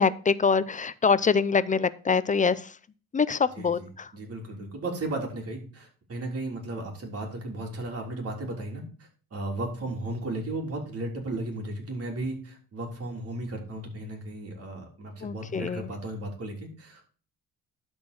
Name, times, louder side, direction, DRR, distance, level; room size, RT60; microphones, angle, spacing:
voice 1, 0.0-2.7 3.1-4.1 15.2-15.9, left 5 dB, 25° left, 16 dB, 0.5 m, -24 dB
voice 2, 3.6-8.8 9.3-17.0, right 2 dB, 50° right, 0 dB, 3.6 m, -35 dB
12.0 x 4.5 x 4.3 m, 0.40 s
cardioid pair, 90°, 30 cm